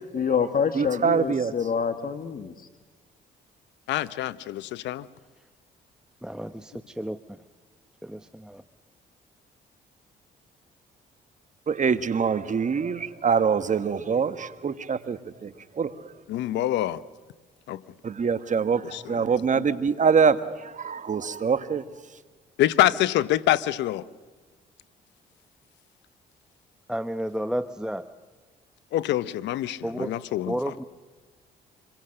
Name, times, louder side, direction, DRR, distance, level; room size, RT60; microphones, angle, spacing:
voice 1, 0.1-2.5, left 6 dB, 50° left, 9 dB, 1.6 m, -26 dB
voice 2, 0.7-1.5 11.7-15.5 15.8-16.1 18.0-21.8, right 6 dB, 45° right, 12 dB, 1.5 m, -24 dB
voice 3, 3.9-5.0 16.3-17.0 17.7-17.8 18.9-19.0 19.5-19.6 22.6-24.0 28.9-29.8 30.3-30.5, left 14 dB, 80° left, 17 dB, 0.8 m, -25 dB
voice 4, 6.2-7.2 8.0-8.6 26.9-28.1 29.8-30.1 30.5-30.8, equal, 5° right, 9 dB, 0.9 m, -31 dB
26.0 x 21.5 x 6.6 m, 1.3 s
supercardioid pair, 65°, 18 cm